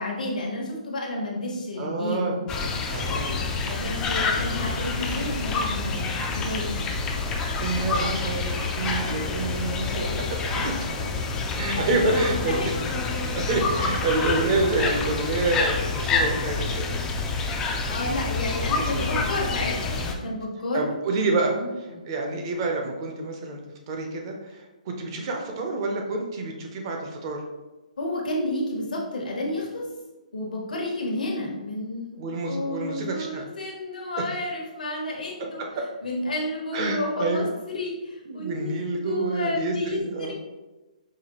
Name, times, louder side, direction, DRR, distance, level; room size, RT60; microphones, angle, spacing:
voice 1, 0.0-2.5 3.0-6.8 7.9-8.4 9.8-10.1 11.7-12.2 12.5-12.7 17.9-20.9 21.5-22.0 28.0-29.8 30.3-32.1 32.5-35.6 36.0-40.3, left 1 dB, 80° left, -1 dB, 1.0 m, -31 dB
voice 2, 1.8-2.4 2.9-3.4 7.6-10.2 10.6-10.7 11.5-12.5 13.3-17.0 17.4-17.5 18.7-19.2 20.7-21.6 22.1-23.6 23.9-27.4 32.1-33.5 36.7-37.5 38.3-40.3, right 3 dB, 35° right, 2 dB, 0.6 m, -28 dB
sound 1, 2.5-20.2, left 4 dB, 15° left, 0.3 m, -27 dB
4.8 x 2.2 x 2.9 m, 1.1 s
hypercardioid pair, 155°, 4 cm